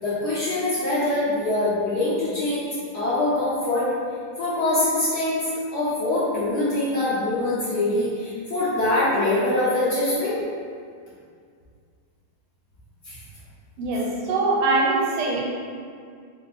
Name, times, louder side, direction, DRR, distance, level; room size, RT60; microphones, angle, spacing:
voice 1, 0.0-3.9 4.4-10.4 13.0-13.2, left 2 dB, 60° left, -11 dB, 1.1 m, -24 dB
voice 2, 13.8-15.4, right 3 dB, 80° right, -4 dB, 1.6 m, -22 dB
3.5 x 2.1 x 4.0 m, 2.2 s
omnidirectional pair, 2.4 m